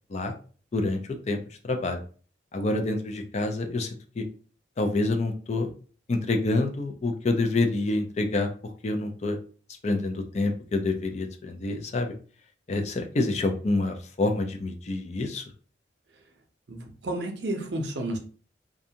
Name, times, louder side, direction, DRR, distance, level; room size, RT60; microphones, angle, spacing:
voice 1, 0.7-2.0 2.5-4.2 4.8-5.7 6.1-9.4 9.8-12.1 12.7-15.4, left 2 dB, 40° left, 5 dB, 0.4 m, -27 dB
voice 2, 16.7-18.2, right 1 dB, 65° right, 4 dB, 0.6 m, -31 dB
2.5 x 2.2 x 2.7 m, 0.41 s
head